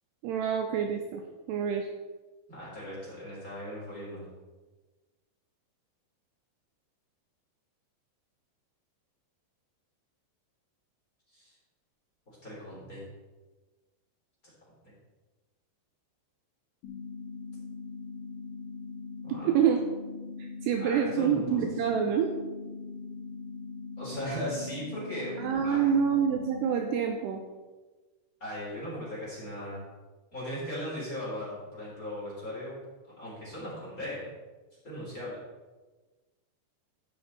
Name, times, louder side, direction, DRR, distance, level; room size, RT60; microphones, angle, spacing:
voice 1, 0.2-1.2 1.5-1.9 19.3-19.8 20.4-22.3 25.4-27.4, right 8 dB, 85° right, 3 dB, 2.5 m, -27 dB
voice 2, 2.5-4.3 11.3-11.5 12.4-13.0 14.4-14.5 19.2-19.5 20.8-21.6 24.0-25.9 28.4-29.8 30.3-32.8 33.0-34.3 34.8-35.4, equal, 20° left, -8 dB, 3.4 m, -38 dB
sound 1, 16.8-26.8, left 4 dB, 60° left, 2.7 m, -41 dB
15.5 x 5.3 x 4.1 m, 1.2 s
omnidirectional pair, 5.4 m